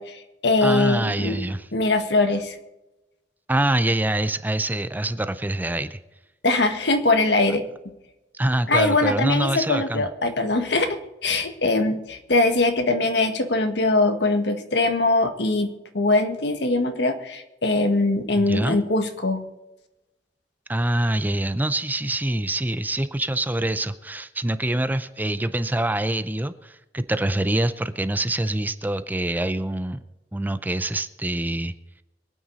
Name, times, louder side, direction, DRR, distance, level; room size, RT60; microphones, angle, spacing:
voice 1, 0.0-1.4 1.7-2.6 6.4-7.7 8.7-19.4, left 2 dB, 70° left, 7 dB, 1.7 m, -22 dB
voice 2, 0.6-1.6 3.5-6.0 8.4-10.0 18.4-18.8 20.7-30.0 30.3-31.7, right 1 dB, 10° right, 12 dB, 0.6 m, -25 dB
24.5 x 9.2 x 4.1 m, 0.98 s
head